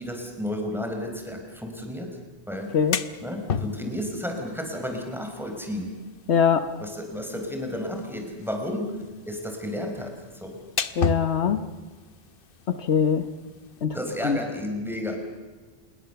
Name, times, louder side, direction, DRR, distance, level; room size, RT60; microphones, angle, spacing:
voice 1, 0.0-2.2 2.5-2.7 3.2-5.9 6.8-8.9 9.3-10.6 13.9-15.2, left 1 dB, ahead, 3 dB, 4.8 m, -32 dB
sound 1, 2.6-13.8, left 5 dB, 55° left, 1.1 m, -36 dB
voice 2, 6.3-6.7 11.0-11.6 12.7-13.2 13.8-14.0 14.2-14.4, left 7 dB, 80° left, 11 dB, 1.4 m, -22 dB
27.5 x 21.5 x 7.0 m, 1.3 s
omnidirectional pair, 1.1 m